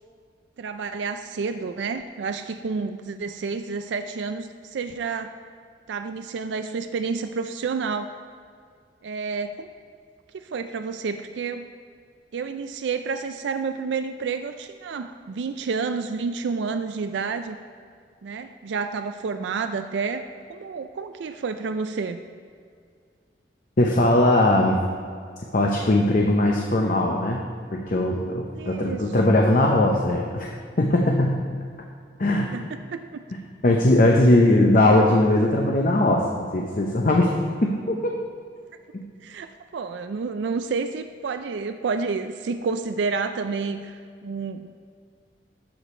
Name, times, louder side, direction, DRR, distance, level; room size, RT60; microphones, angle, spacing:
voice 1, 0.6-5.4 5.9-8.1 9.0-9.7 10.3-11.7 12.3-17.6 18.2-22.2 28.5-29.0 32.5-33.2 33.6-33.9 39.2-44.7, right 4 dB, 80° right, 8 dB, 0.4 m, -30 dB
voice 2, 23.8-24.8 25.5-27.4 27.7-31.4 32.2-32.5 33.6-37.3 37.6-38.1 38.9-39.0, left 1 dB, 50° left, 0 dB, 0.7 m, -20 dB
13.5 x 5.0 x 4.3 m, 2.1 s
head